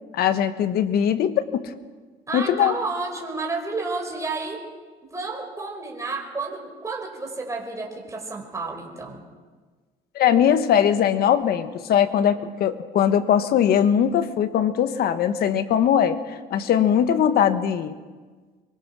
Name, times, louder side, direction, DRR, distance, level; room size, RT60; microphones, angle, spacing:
voice 1, 0.1-1.7 2.3-2.8 10.1-18.0, left 9 dB, 70° left, 10 dB, 1.5 m, -20 dB
voice 2, 2.3-4.6 5.1-9.2, right 3 dB, 20° right, 1 dB, 5.5 m, -31 dB
24.0 x 23.5 x 6.3 m, 1.4 s
cardioid pair, 110°, 17 cm